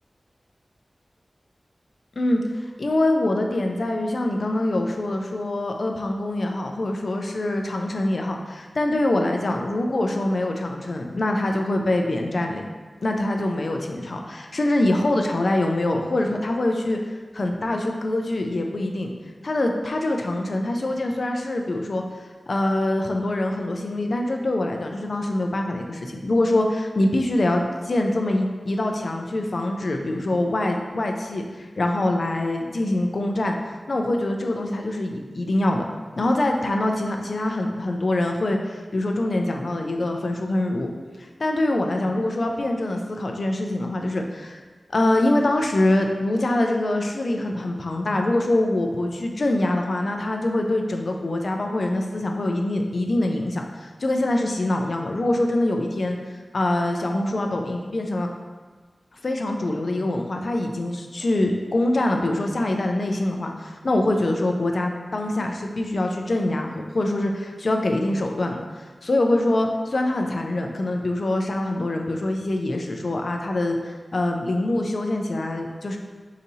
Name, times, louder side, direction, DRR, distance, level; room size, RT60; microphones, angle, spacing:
voice 1, 2.2-12.6 13.0-19.1 19.4-22.0 22.5-35.8 36.2-40.9 41.2-44.6 44.9-56.2 56.5-58.3 59.2-68.6 69.0-76.0, left 1 dB, 60° left, 2 dB, 0.4 m, -24 dB
4.9 x 2.7 x 2.7 m, 1.4 s
wide cardioid pair, 80°, 0 cm